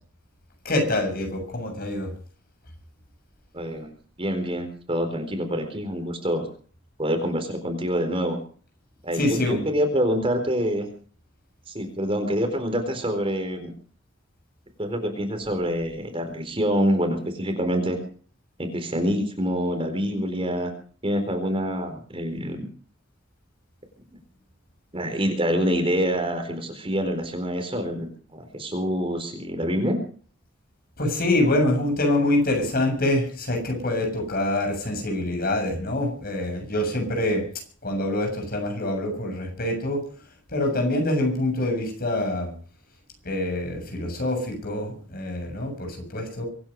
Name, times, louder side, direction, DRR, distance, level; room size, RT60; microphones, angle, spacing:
voice 1, 0.6-2.1 9.1-9.6 31.0-37.5 37.8-40.1 40.5-42.5 43.2-46.4, left 1 dB, 50° left, 3 dB, 7.1 m, -25 dB
voice 2, 3.5-3.9 4.2-6.4 7.0-8.4 9.0-10.9 11.7-13.7 14.8-18.0 18.6-20.7 21.0-22.7 24.9-30.0, equal, 30° right, 5 dB, 4.2 m, -26 dB
25.0 x 10.5 x 5.4 m, 0.43 s
head